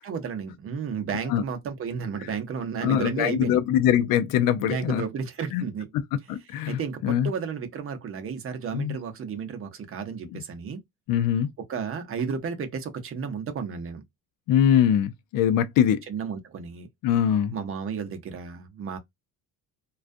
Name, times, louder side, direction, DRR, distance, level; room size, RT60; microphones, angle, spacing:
voice 1, 0.0-3.6 4.6-5.9 6.7-10.8 11.6-14.0 16.1-16.9 17.5-19.0, right 6 dB, 35° right, 0.7 m, -32 dB
voice 2, 2.8-5.0 5.5-5.6 6.3-7.3 8.7-9.0 10.3-10.4 11.1-11.5 14.5-16.0 17.0-17.6, left 9 dB, 65° left, 0.5 m, -23 dB
2.3 x 2.3 x 2.5 m
cardioid pair, 120°, 37 cm